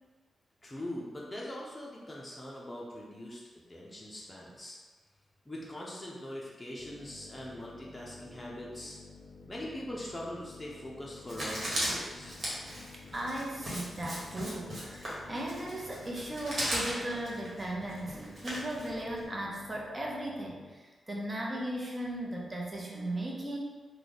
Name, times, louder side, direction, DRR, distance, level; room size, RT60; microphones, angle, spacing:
voice 1, 0.6-3.4 3.7-4.8 5.5-9.0 9.5-12.4, left 1 dB, 15° left, -4 dB, 0.7 m, -42 dB
sound 1, 6.8-20.8, left 4 dB, 50° left, 0.4 m, -52 dB
Writing, 11.3-19.2, equal, 50° right, 1.4 m, -37 dB
voice 2, 13.1-20.6 21.1-23.6, right 1 dB, 30° right, -2 dB, 0.8 m, -37 dB
3.1 x 2.3 x 4.0 m, 1.3 s
cardioid pair, 70°, 0 cm